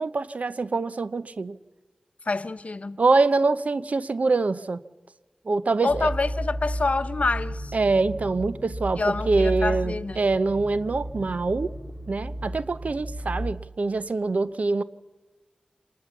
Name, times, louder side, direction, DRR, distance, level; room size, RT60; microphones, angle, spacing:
voice 1, 0.0-1.6 3.0-4.8 5.5-6.1 7.7-11.7 12.1-14.8, right 3 dB, 70° right, 0.7 m, -24 dB
voice 2, 2.2-3.0 5.8-7.8 9.0-10.2, left 3 dB, 65° left, 0.9 m, -27 dB
sound 1, 5.9-13.5, equal, 30° right, 2.8 m, -33 dB
25.5 x 19.0 x 7.1 m
wide cardioid pair, 50°, 3 cm